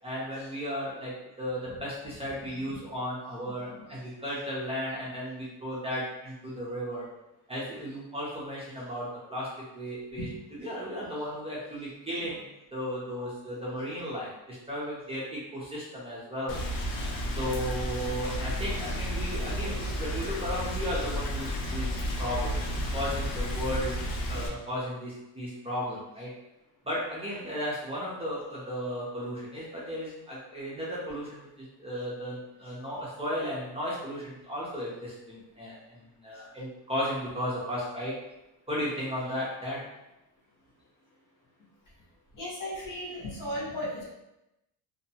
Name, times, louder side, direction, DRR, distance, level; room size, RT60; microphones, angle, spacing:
voice 1, 0.0-7.1 7.5-12.4 12.7-16.6 17.3-24.0 24.3-26.3 26.9-38.2 38.7-39.9, equal, 15° right, -7 dB, 0.6 m, -35 dB
Rain, 16.5-24.5, equal, 85° left, 0.7 m, -32 dB
voice 2, 42.3-44.0, left 1 dB, 50° left, -5 dB, 1.0 m, -35 dB
2.7 x 2.1 x 2.7 m, 0.92 s
cardioid pair, 125°, 41 cm